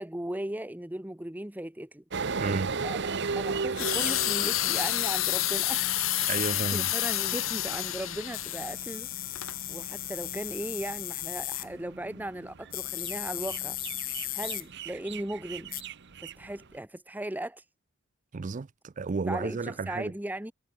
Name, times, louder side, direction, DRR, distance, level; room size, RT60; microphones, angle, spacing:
voice 1, 0.0-2.0 2.8-6.0 6.4-13.8 14.3-15.7 16.2-17.6 19.3-20.5, right 1 dB, 10° right, 1.0 m, -37 dB
sound 1, 2.1-16.7, right 4 dB, 55° right, 1.0 m, -38 dB
voice 2, 2.4-2.7 6.3-6.9 18.3-20.1, right 4 dB, 35° right, 0.4 m, -32 dB
sound 2, 3.8-8.7 9.4-9.5, left 15 dB, 70° left, 1.2 m, -29 dB
sound 3, 4.0-6.5 6.9-7.0 8.3-11.7 12.7-14.7 15.7-15.8, left 17 dB, 45° left, 0.4 m, -36 dB
head